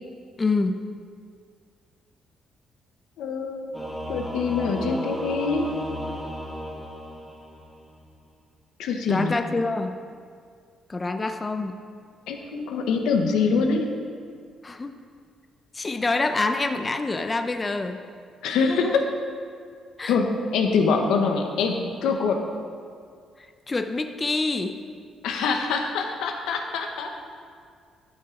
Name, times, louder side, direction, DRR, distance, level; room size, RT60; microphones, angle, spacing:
voice 1, 0.4-0.9 9.1-9.9 10.9-11.8 14.6-14.9 15.7-18.0 18.7-19.0 20.0-20.2 23.4-24.8, left 3 dB, 25° left, 7 dB, 0.5 m, -26 dB
voice 2, 3.2-3.7 4.1-5.7 8.8-9.3 12.3-13.9 18.4-19.0 20.1-22.4 25.2-27.1, left 5 dB, 85° left, 4 dB, 0.8 m, -24 dB
Singing / Musical instrument, 3.7-7.8, equal, 5° left, 1.6 m, -34 dB
11.5 x 5.9 x 3.7 m, 2.2 s
cardioid pair, 90°, 0 cm